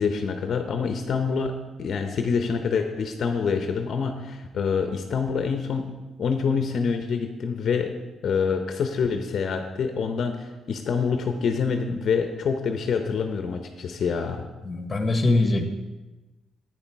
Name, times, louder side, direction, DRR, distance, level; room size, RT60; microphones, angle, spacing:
voice 1, 0.0-5.9 6.2-7.9 8.2-14.4, left 5 dB, 60° left, 6 dB, 0.7 m, -26 dB
voice 2, 14.6-15.7, left 2 dB, 25° left, 5 dB, 1.3 m, -22 dB
8.7 x 7.3 x 4.6 m, 1.1 s
cardioid pair, 90°, 0 cm